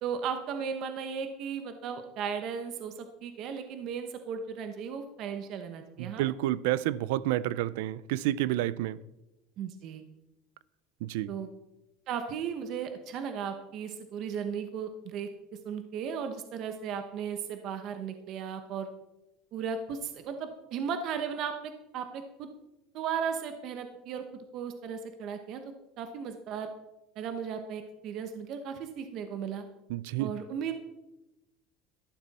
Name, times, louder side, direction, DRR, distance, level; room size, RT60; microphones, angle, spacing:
voice 1, 0.0-2.9 3.2-6.2 9.6-10.0 11.3-11.5 12.1-15.3 15.6-18.9 19.5-22.5 22.9-24.3 24.5-25.6 26.0-26.7 27.2-29.7 30.2-30.7, right 7 dB, 45° right, 1.0 m, -36 dB
voice 2, 6.0-9.0 11.0-11.3 29.9-30.3, right 14 dB, 85° right, 0.5 m, -29 dB
13.0 x 11.0 x 4.2 m
cardioid pair, 160°, 0 cm